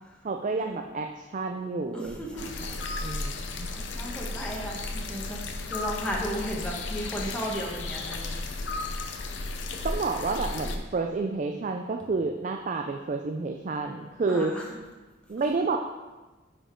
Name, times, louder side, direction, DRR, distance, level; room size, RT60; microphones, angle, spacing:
voice 1, 0.2-3.7 9.8-14.8 15.3-15.8, right 3 dB, 40° right, 4 dB, 0.4 m, -30 dB
voice 2, 1.9-2.5 3.0-3.2 3.7-8.4 14.3-14.7, equal, 5° left, -2 dB, 1.2 m, -35 dB
sound 1, 2.4-10.8, left 3 dB, 70° left, 0.7 m, -34 dB
9.5 x 5.1 x 3.7 m, 1.2 s
head